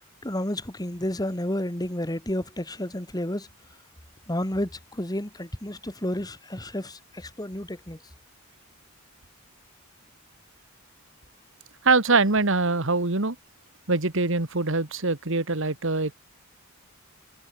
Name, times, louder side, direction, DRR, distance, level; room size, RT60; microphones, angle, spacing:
voice 1, 0.2-3.5 4.3-8.0, left 1 dB, 20° left, 2.2 m, -31 dB
voice 2, 11.8-13.4 13.9-16.2, right 3 dB, 60° right, 1.8 m, -23 dB
head